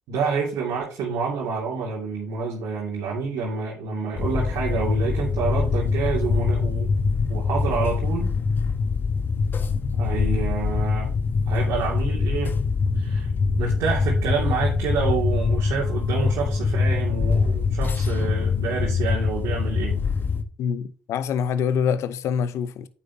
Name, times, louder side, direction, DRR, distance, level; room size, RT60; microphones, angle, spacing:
voice 1, 0.1-6.9 7.3-8.3 10.0-11.1 11.5-12.5 12.9-13.3 13.6-20.0, right 5 dB, 70° right, 2.5 m, -28 dB
sound 1, 4.2-20.4, left 4 dB, 40° left, 1.2 m, -24 dB
voice 2, 20.6-22.9, left 7 dB, 65° left, 0.8 m, -25 dB
9.2 x 7.1 x 2.8 m
hypercardioid pair, 65°, 5 cm